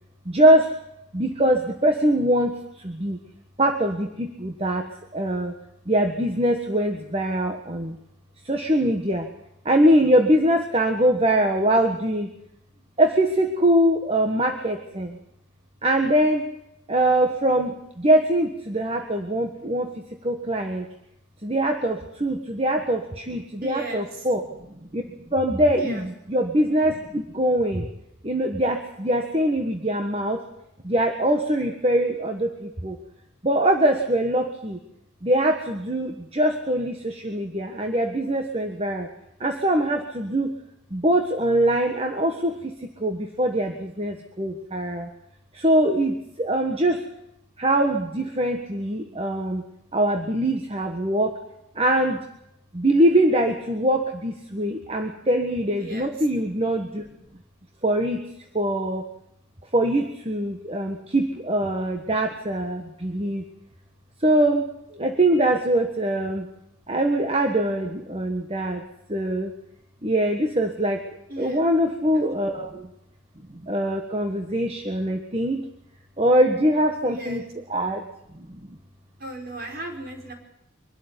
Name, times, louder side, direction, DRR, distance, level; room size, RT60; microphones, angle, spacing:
voice 1, 0.2-0.7 1.1-3.2 3.6-4.9 5.1-5.5 5.9-8.0 8.4-9.3 9.6-12.3 13.0-15.2 15.8-16.5 16.9-20.9 21.4-24.4 24.9-25.0 25.3-27.9 28.2-30.4 30.8-33.0 33.4-34.8 35.2-39.1 39.4-40.5 40.9-45.1 45.5-47.0 47.6-49.6 49.9-51.4 51.7-52.2 52.7-57.0 57.8-58.3 58.5-59.1 59.7-63.4 64.2-66.5 66.9-68.8 69.1-69.5 70.0-71.0 71.4-72.9 73.5-75.6 76.2-78.1 78.3-78.8, right 1 dB, 30° right, 4 dB, 1.5 m, -23 dB
voice 2, 23.6-24.1 25.8-26.1 55.8-56.1 71.3-71.6 72.2-72.3 77.1-77.5 79.2-80.3, right 2 dB, 50° right, 2 dB, 5.0 m, -36 dB
24.0 x 12.5 x 9.7 m, 0.83 s
head